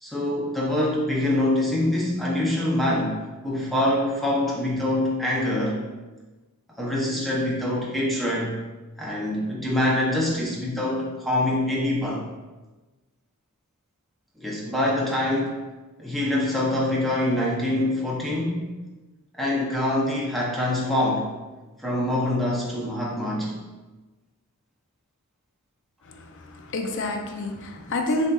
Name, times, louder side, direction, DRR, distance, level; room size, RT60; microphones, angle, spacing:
voice 1, 0.0-5.8 6.8-8.5 9.0-12.2 14.4-15.6 16.0-18.7 19.3-21.3 21.8-23.6, left 1 dB, ahead, -5 dB, 0.6 m, -25 dB
voice 2, 26.1-28.3, left 2 dB, 55° left, 3 dB, 0.5 m, -28 dB
6.2 x 2.6 x 2.3 m, 1.2 s
head